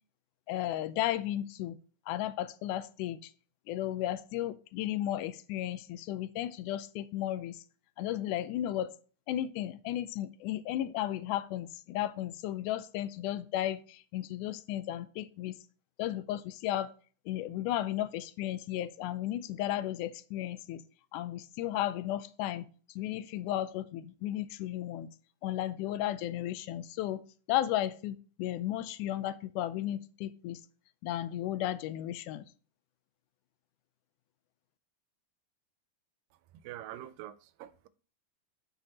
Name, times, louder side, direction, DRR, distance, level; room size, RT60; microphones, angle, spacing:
voice 1, 0.5-1.8 2.1-3.3 3.7-7.6 8.0-8.9 9.3-15.6 16.0-16.9 17.3-20.8 21.1-22.7 23.0-25.1 25.4-27.2 27.5-30.6 31.0-32.5, left 13 dB, 80° left, 1.9 m, -34 dB
voice 2, 36.6-37.9, right 13 dB, 90° right, 2.3 m, -45 dB
8.9 x 7.0 x 2.9 m
omnidirectional pair, 3.9 m